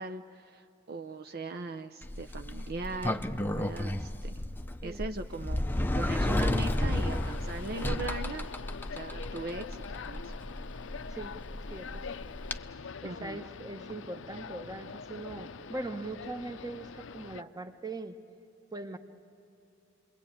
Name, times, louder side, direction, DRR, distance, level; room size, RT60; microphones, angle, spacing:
voice 1, 0.0-3.3 3.5-4.3 4.8-5.6 6.0-8.5 8.9-10.3 13.0-13.4, right 2 dB, 55° right, 6 dB, 0.7 m, -39 dB
Sliding door, 2.0-12.6, left 1 dB, 10° left, 0.6 m, -33 dB
sound 1, 6.3-17.4, left 5 dB, 70° left, 0.6 m, -44 dB
voice 2, 11.7-12.0 13.0-18.1 18.7-19.0, right 2 dB, 20° right, 7 dB, 1.1 m, -40 dB
29.5 x 22.0 x 8.8 m, 2.8 s
head